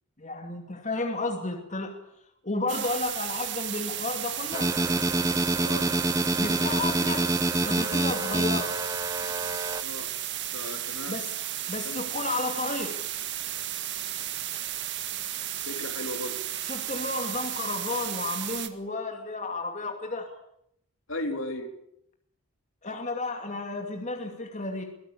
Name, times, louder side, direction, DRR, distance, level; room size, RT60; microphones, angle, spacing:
voice 1, 0.2-2.0 2.4-4.7 6.4-7.3 7.6-8.8 11.1-11.3 11.7-13.0 16.7-20.3 22.8-24.8, left 2 dB, 35° left, 3 dB, 2.5 m, -32 dB
sound 1, 2.7-18.7, right 12 dB, 55° right, 1.8 m, -34 dB
sound 2, 4.5-9.8, right 1 dB, 15° right, 1.0 m, -27 dB
voice 2, 5.6-5.9 9.8-10.1 10.5-11.2 11.9-12.0 15.7-16.4 21.1-21.7, left 1 dB, 65° left, 5 dB, 3.7 m, -35 dB
23.5 x 17.5 x 8.7 m, 0.76 s
head